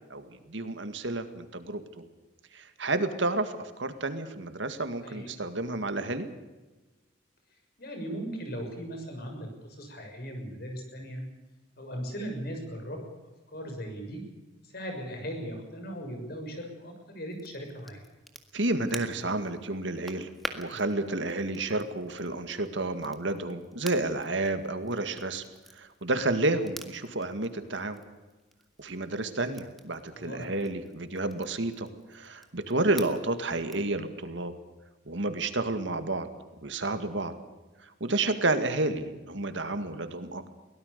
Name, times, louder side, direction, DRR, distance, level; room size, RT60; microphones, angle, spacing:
voice 1, 0.1-2.0 2.5-6.3 18.5-20.3 20.5-25.4 25.7-28.0 28.8-34.5 35.1-36.3 36.6-37.3 37.8-40.5, right 2 dB, 70° right, 9 dB, 2.1 m, -30 dB
voice 2, 7.8-11.2 11.8-13.0 13.5-14.2 14.6-18.0 30.2-30.5, equal, 55° left, 4 dB, 6.6 m, -38 dB
Crackle, 17.3-33.9, equal, ahead, 1.8 m, -48 dB
23.0 x 17.5 x 6.8 m, 1.2 s
head